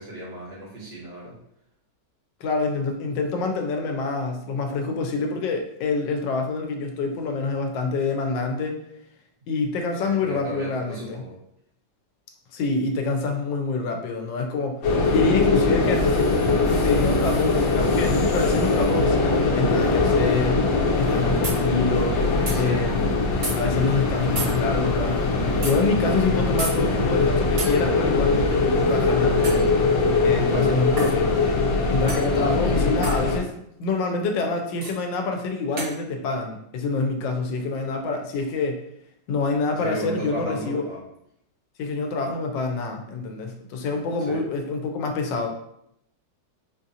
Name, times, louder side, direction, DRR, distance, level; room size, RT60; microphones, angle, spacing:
voice 1, 0.0-1.4 10.0-11.4 22.5-22.9 30.5-30.8 39.8-41.0 44.3-44.4, right 2 dB, 75° right, -8 dB, 2.2 m, -34 dB
voice 2, 2.4-8.8 9.5-11.2 12.5-14.8 15.1-22.3 22.5-23.1 23.6-25.2 25.6-29.7 30.2-31.4 31.9-33.5 33.8-38.8 39.3-40.8 41.8-45.5, left 3 dB, 90° left, 3 dB, 1.3 m, -26 dB
sound 1, 14.8-33.4, left 3 dB, 70° left, 1.2 m, -22 dB
sound 2, 21.4-21.6 22.5-22.6 23.4-23.6 24.4-24.5 25.6-25.8 26.6-26.8 27.6-27.7 29.4-29.7 31.0-31.2 32.1-32.3 33.0-33.2 34.8-35.0 35.8-36.0, right 2 dB, 50° right, 0.6 m, -29 dB
4.3 x 2.5 x 2.7 m, 0.75 s
omnidirectional pair, 1.9 m